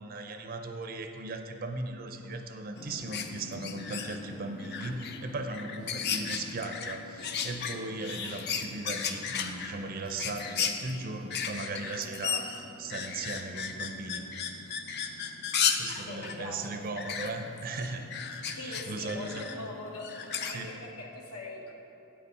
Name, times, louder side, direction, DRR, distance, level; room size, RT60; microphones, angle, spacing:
voice 1, 0.0-14.3 15.8-18.1 18.5-19.5 20.5-20.7, right 2 dB, 40° right, 5 dB, 0.5 m, -38 dB
sound 1, 2.8-20.6, left 6 dB, 50° left, 0.5 m, -35 dB
voice 2, 16.1-16.9 18.6-21.7, left 2 dB, 80° left, 0 dB, 1.2 m, -41 dB
8.6 x 5.4 x 5.4 m, 3.0 s
head